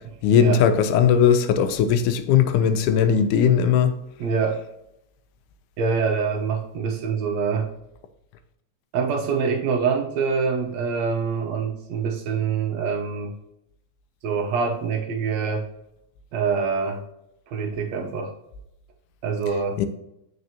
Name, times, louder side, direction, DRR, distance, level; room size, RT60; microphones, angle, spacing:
voice 1, 0.2-4.0 19.8-19.9, left 8 dB, 90° left, 2.1 m, -18 dB
voice 2, 4.2-4.6 5.8-7.7 8.9-13.3 14.2-15.7 16.3-17.0 17.5-18.3 19.2-19.9, right 5 dB, 70° right, 1.9 m, -25 dB
8.0 x 5.1 x 2.8 m
omnidirectional pair, 3.5 m